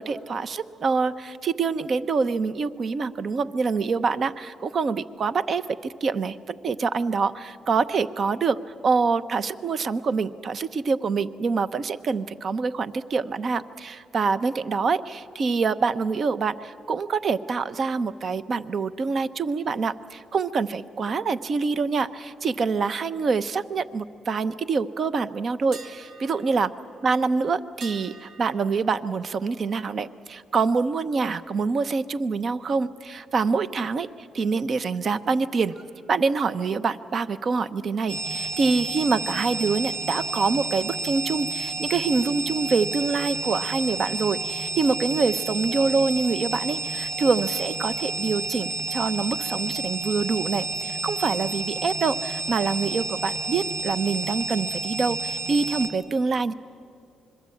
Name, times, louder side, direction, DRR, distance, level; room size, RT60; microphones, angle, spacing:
voice 1, 0.0-8.6 8.8-26.7 27.0-35.7 36.1-56.5, right 4 dB, 50° right, 13 dB, 0.8 m, -25 dB
sound 1, 25.7-31.6 31.9-32.2 35.7-36.0, right 4 dB, 70° right, 2.5 m, -49 dB
sound 2, 38.1-55.9, right 2 dB, 85° right, 1.7 m, -30 dB
26.0 x 22.5 x 8.5 m, 2.4 s
cardioid pair, 90°, 0 cm